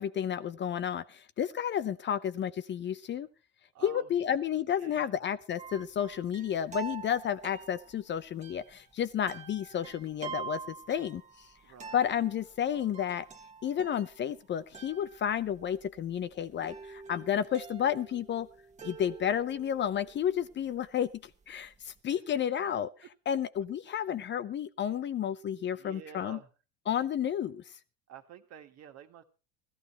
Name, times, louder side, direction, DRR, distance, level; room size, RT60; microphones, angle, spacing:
voice 1, 0.0-3.3 3.8-11.5 11.9-13.3 13.6-18.5 18.8-22.9 23.3-26.4 26.9-27.7, left 9 dB, 35° left, 14 dB, 0.7 m, -31 dB
voice 2, 3.7-4.5 4.8-5.2 11.6-12.0 25.6-26.5 28.1-29.2, right 7 dB, 50° right, 6 dB, 1.9 m, -50 dB
sound 1, 5.6-22.0, right 5 dB, 20° right, 1.5 m, -47 dB
15.0 x 13.5 x 4.4 m, 0.34 s
supercardioid pair, 105°, 33 cm